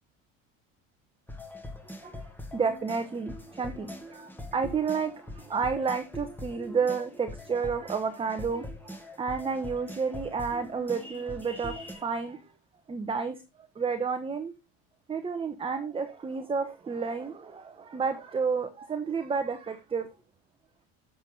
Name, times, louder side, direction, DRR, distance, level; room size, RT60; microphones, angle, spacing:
sound 1, 1.3-11.9, left 1 dB, 5° left, 1.9 m, -43 dB
voice 1, 2.5-12.4 12.9-13.4 13.8-14.5 15.1-20.1, right 5 dB, 15° right, 0.9 m, -31 dB
7.1 x 7.1 x 3.8 m
cardioid pair, 125°, 33 cm